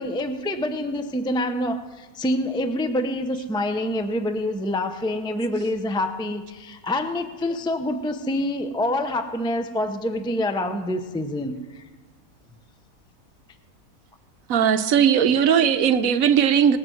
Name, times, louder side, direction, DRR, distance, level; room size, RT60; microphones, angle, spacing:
voice 1, 0.0-11.8, left 1 dB, 5° left, 7 dB, 0.5 m, -26 dB
voice 2, 14.5-16.8, right 8 dB, 70° right, 10 dB, 1.1 m, -18 dB
19.0 x 7.5 x 7.8 m, 1.3 s
omnidirectional pair, 1.6 m